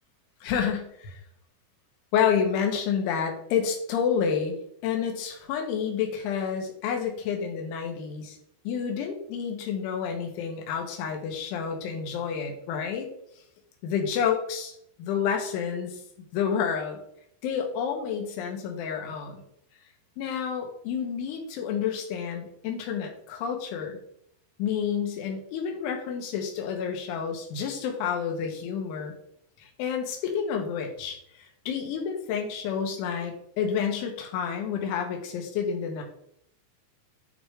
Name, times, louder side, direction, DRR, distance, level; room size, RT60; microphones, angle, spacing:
voice 1, 0.4-1.2 2.1-4.6 4.8-8.4 8.7-13.1 13.8-14.7 15.0-16.0 16.3-17.0 17.4-19.4 20.2-24.0 24.6-29.1 29.6-36.0, left 7 dB, 75° left, 3 dB, 3.7 m, -29 dB
11.0 x 3.9 x 5.1 m, 0.71 s
omnidirectional pair, 5.8 m